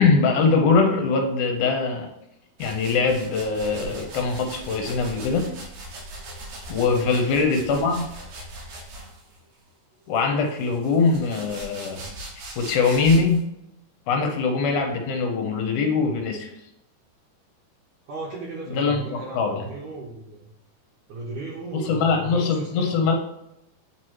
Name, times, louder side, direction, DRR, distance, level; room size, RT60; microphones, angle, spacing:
voice 1, 0.0-2.1 2.6-5.5 6.7-8.0 10.1-12.1 12.6-13.4 14.1-16.5 18.8-19.7 21.7-23.1, left 4 dB, 70° left, 3 dB, 2.1 m, -22 dB
sound 1, 2.6-9.4 10.2-13.4, right 1 dB, 85° right, 3.2 m, -40 dB
voice 2, 6.8-7.3 18.1-20.4 21.1-23.0, right 2 dB, 65° right, -4 dB, 2.2 m, -36 dB
8.6 x 3.0 x 4.6 m, 0.84 s
omnidirectional pair, 4.0 m